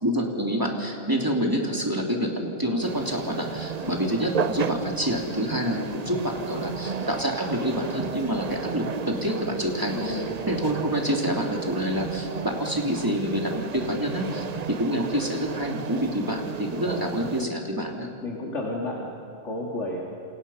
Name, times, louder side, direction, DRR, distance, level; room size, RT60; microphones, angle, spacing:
voice 1, 0.0-18.1, equal, 15° right, 0 dB, 3.0 m, -27 dB
sound 1, 2.8-17.5, right 6 dB, 40° right, 0.6 m, -34 dB
voice 2, 9.9-10.3 13.9-14.0 17.3-17.5 18.2-19.1 19.4-20.0, left 2 dB, 60° left, -3 dB, 2.8 m, -32 dB
29.0 x 27.0 x 5.7 m, 2.7 s
omnidirectional pair, 1.4 m